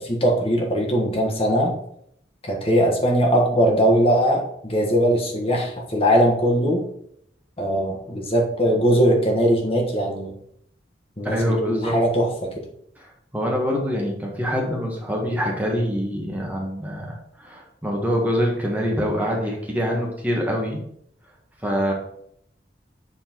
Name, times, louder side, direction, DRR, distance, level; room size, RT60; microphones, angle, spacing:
voice 1, 0.0-1.7 2.4-6.8 7.6-10.3 11.2-11.4 11.6-12.5, equal, 35° left, -1 dB, 1.4 m, -20 dB
voice 2, 11.2-12.0 13.0-20.8 21.6-21.9, equal, 10° right, -1 dB, 1.3 m, -25 dB
7.6 x 4.4 x 4.4 m, 0.70 s
head